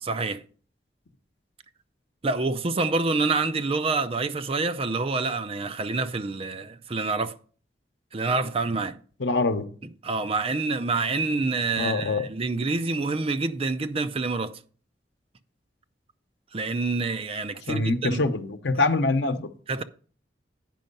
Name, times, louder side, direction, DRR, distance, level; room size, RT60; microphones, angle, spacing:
voice 1, 0.0-0.4 2.2-7.4 8.1-9.0 10.0-14.6 16.5-18.2 19.7-19.8, right 3 dB, 35° right, 0.5 m, -27 dB
voice 2, 9.2-9.7 11.8-12.3 17.7-19.5, left 3 dB, 80° left, 0.9 m, -24 dB
9.1 x 5.4 x 5.3 m
head